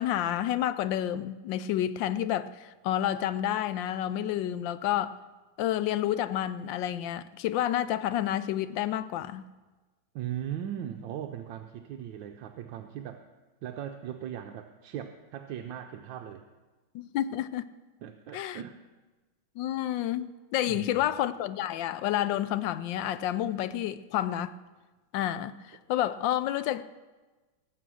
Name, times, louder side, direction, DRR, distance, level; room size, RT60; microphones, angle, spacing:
voice 1, 0.0-5.2 5.6-9.5 16.9-17.6 18.3-18.6 19.6-24.5 25.1-26.8, left 11 dB, 75° left, 1.2 m, -29 dB
voice 2, 10.1-13.2 13.6-16.4 18.0-18.8 20.6-21.1, right 10 dB, 70° right, 1.3 m, -38 dB
19.0 x 7.6 x 6.3 m
omnidirectional pair, 2.3 m